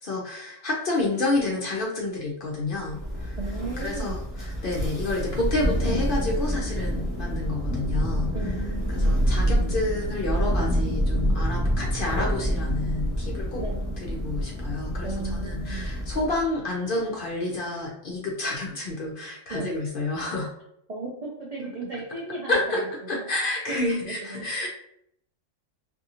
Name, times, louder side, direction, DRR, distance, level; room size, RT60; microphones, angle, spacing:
voice 1, 0.0-3.4 3.8-8.3 8.9-13.6 14.0-20.5 22.5-22.8 23.1-24.7, left 2 dB, 55° left, -1 dB, 0.6 m, -29 dB
Thunder, 2.8-16.5, equal, 25° left, 1.1 m, -27 dB
voice 2, 3.4-4.2 8.3-9.2 13.6-14.0 15.0-15.9 19.5-19.7 20.9-22.8 23.1-23.3 23.9-24.5, right 3 dB, 70° right, -3 dB, 0.3 m, -36 dB
2.6 x 2.6 x 2.7 m, 0.73 s
omnidirectional pair, 1.3 m